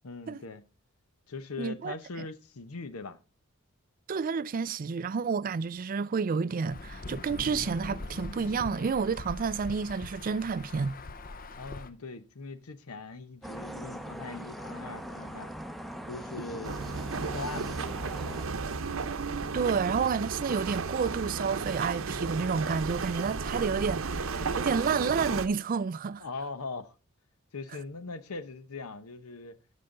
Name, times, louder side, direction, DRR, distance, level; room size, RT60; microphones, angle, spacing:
voice 1, 0.0-0.6 1.3-3.2 11.6-15.5 16.1-16.8 17.3-17.7 18.2-18.4 26.2-27.0 27.5-29.6, left 3 dB, 90° left, 0.8 m, -40 dB
voice 2, 1.6-2.3 4.1-11.0 19.5-26.2, right 5 dB, 40° right, 0.4 m, -30 dB
Insect / Thunder / Rain, 6.7-11.9, left 2 dB, 40° left, 0.6 m, -42 dB
sound 1, 13.4-18.4, equal, ahead, 0.6 m, -41 dB
sound 2, 16.6-25.5, right 4 dB, 65° right, 0.7 m, -33 dB
13.0 x 5.6 x 3.8 m
head